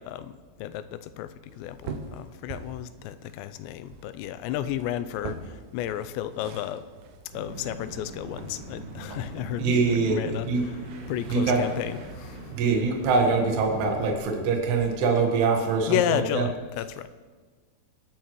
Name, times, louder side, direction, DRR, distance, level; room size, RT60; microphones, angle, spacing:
voice 1, 0.0-6.9 7.3-10.5 11.1-12.4 15.9-17.1, left 11 dB, 85° left, 13 dB, 2.8 m, -32 dB
sound 1, 1.5-8.6, right 5 dB, 90° right, 1.8 m, -43 dB
sound 2, 7.3-14.2, right 2 dB, 55° right, 2.9 m, -41 dB
voice 2, 9.6-10.6 11.3-11.6 12.5-16.5, right 4 dB, 75° right, 2 dB, 3.5 m, -24 dB
23.5 x 11.0 x 3.1 m, 1.5 s
omnidirectional pair, 5.0 m